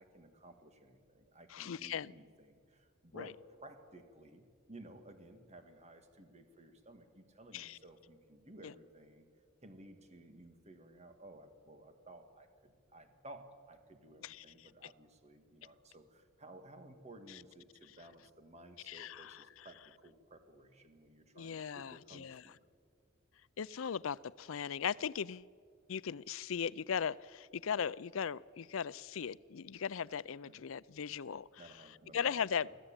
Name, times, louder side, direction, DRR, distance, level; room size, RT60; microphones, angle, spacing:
voice 1, 0.0-9.3 9.6-22.6 30.4-30.6 31.6-32.8, right 1 dB, 35° right, 2.1 m, -56 dB
voice 2, 1.5-2.1 3.1-3.3 7.5-7.8 8.6-8.7 14.2-14.4 18.9-19.7 21.4-22.4 23.6-25.5 25.9-31.5 32.1-32.7, left 7 dB, 80° left, 0.5 m, -38 dB
24.5 x 15.0 x 8.9 m
head